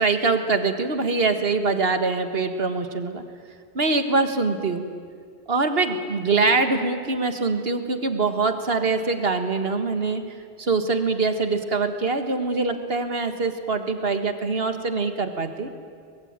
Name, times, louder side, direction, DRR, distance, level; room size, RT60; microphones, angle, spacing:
voice 1, 0.0-3.2 3.8-4.8 5.5-10.2 10.6-15.7, right 3 dB, 60° right, 8 dB, 1.9 m, -23 dB
24.0 x 20.5 x 9.0 m, 2.1 s
omnidirectional pair, 1.1 m